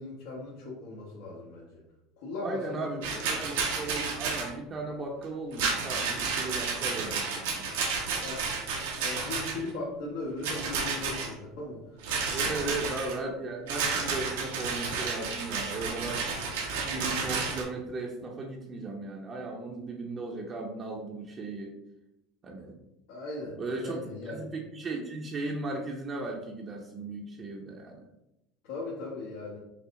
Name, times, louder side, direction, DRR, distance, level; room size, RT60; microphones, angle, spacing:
voice 1, 0.0-1.7 2.2-3.5 8.2-8.4 9.0-12.7 23.1-24.4 28.6-29.6, left 2 dB, 75° left, -6 dB, 1.2 m, -39 dB
voice 2, 2.4-7.7 12.3-16.2 16.8-21.8 22.4-22.8 23.6-24.0 24.3-28.0, right 3 dB, 30° right, 0 dB, 0.6 m, -36 dB
Rattle, 3.0-4.5 5.5-9.7 10.4-11.3 12.0-13.2 13.7-17.6, right 4 dB, 90° right, 1.0 m, -31 dB
5.6 x 2.0 x 3.7 m, 0.89 s
supercardioid pair, 110°, 0 cm